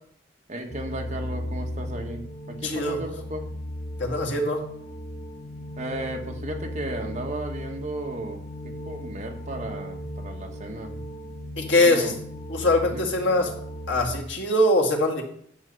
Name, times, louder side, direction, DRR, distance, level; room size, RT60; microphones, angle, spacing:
voice 1, 0.5-3.5 5.8-8.4 8.6-11.0 11.7-12.1 12.8-13.0, right 1 dB, 40° right, 2 dB, 1.6 m, -35 dB
sound 1, 0.7-14.2, equal, 35° left, 0.8 m, -36 dB
voice 2, 2.6-3.0 4.0-4.6 11.6-12.1 12.5-13.5 13.9-15.2, left 1 dB, 80° left, 2 dB, 2.1 m, -22 dB
10.5 x 7.5 x 5.4 m, 0.65 s
head